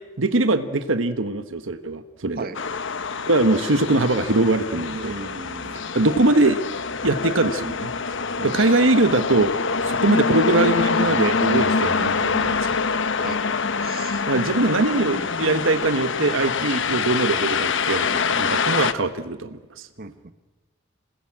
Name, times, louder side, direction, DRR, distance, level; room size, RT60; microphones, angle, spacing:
voice 1, 0.2-2.5 3.3-5.1 5.9-6.6 7.0-7.9 8.4-9.5 9.8-13.0 14.3-19.9, right 2 dB, 70° right, 10 dB, 1.3 m, -22 dB
sound 1, 2.5-18.9, left 5 dB, 65° left, 1.2 m, -25 dB
voice 2, 4.9-5.8 8.4-8.7 13.2-14.6 20.0-20.1, right 3 dB, 50° right, 10 dB, 1.4 m, -37 dB
27.5 x 20.0 x 8.8 m, 1.2 s
head